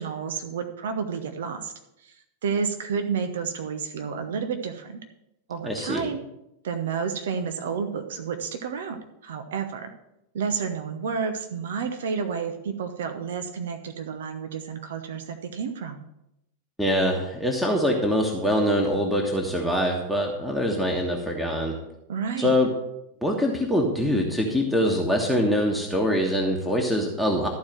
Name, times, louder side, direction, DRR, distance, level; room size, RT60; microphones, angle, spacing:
voice 1, 0.0-1.7 2.0-2.2 2.4-5.0 5.5-6.2 6.6-9.9 10.3-16.1 22.1-22.6, right 6 dB, 60° right, 7 dB, 0.9 m, -30 dB
voice 2, 5.6-6.0 16.8-21.8 22.4-22.7 23.2-27.5, equal, ahead, 0 dB, 1.4 m, -24 dB
13.0 x 4.7 x 7.5 m, 0.85 s
figure-of-eight pair, 90°, 0 cm